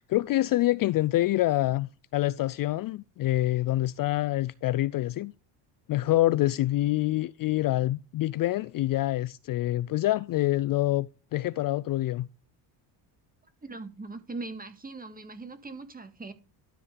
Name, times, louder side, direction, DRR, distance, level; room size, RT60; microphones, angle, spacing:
voice 1, 0.0-5.3 5.9-11.1 11.3-12.3, left 16 dB, 45° left, 0.5 m, -26 dB
voice 2, 13.6-16.3, right 3 dB, 20° right, 1.9 m, -40 dB
12.5 x 4.4 x 5.1 m
supercardioid pair, 90°, 48 cm